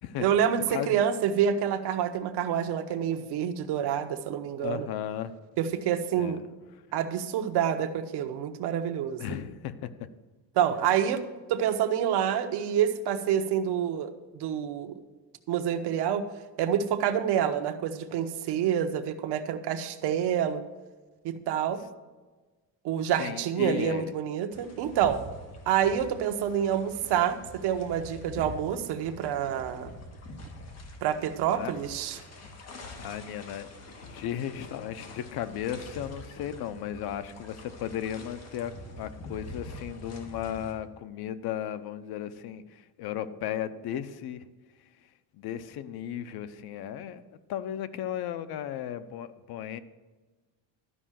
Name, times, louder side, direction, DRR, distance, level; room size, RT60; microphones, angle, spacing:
voice 1, 0.2-4.9 5.6-6.4 6.9-9.2 10.5-11.2 11.5-15.0 15.5-16.3 16.6-20.6 21.2-21.8 22.8-25.2 25.7-29.9 31.0-32.2, right 9 dB, 75° right, 8 dB, 1.1 m, -27 dB
voice 2, 4.6-5.3 6.2-6.4 9.2-9.9 23.2-24.1 31.6-31.7 33.0-44.4 45.3-47.2 47.5-49.8, left 10 dB, 70° left, 12 dB, 0.8 m, -35 dB
sound 1, 24.5-40.7, left 1 dB, 40° left, 1.8 m, -45 dB
12.5 x 5.5 x 7.5 m, 1.3 s
cardioid pair, 165°, 40 cm